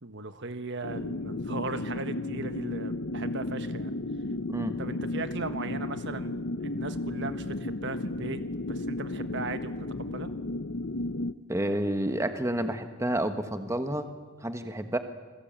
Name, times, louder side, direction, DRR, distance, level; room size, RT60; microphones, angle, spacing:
voice 1, 0.0-3.9 4.8-8.4 8.7-10.3, right 3 dB, 55° right, 10 dB, 1.4 m, -37 dB
sound 1, 0.8-11.3, left 2 dB, 55° left, 0.8 m, -34 dB
voice 2, 11.5-14.1 14.4-15.0, right 1 dB, 15° right, 8 dB, 1.4 m, -29 dB
28.0 x 20.5 x 9.0 m, 1.3 s
head